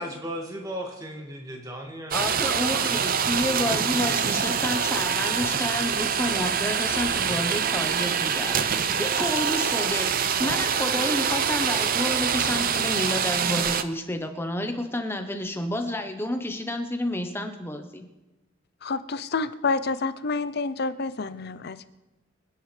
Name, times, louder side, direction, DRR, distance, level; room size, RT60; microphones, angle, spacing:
voice 1, 0.0-3.0, equal, 15° right, 1 dB, 1.9 m, -37 dB
voice 2, 2.1-18.1, left 1 dB, 10° left, 6 dB, 0.9 m, -30 dB
sound 1, 2.1-13.8, right 7 dB, 45° right, 0.5 m, -25 dB
voice 3, 18.8-21.8, left 4 dB, 50° left, 14 dB, 0.5 m, -28 dB
25.5 x 9.9 x 3.3 m, 1.1 s
head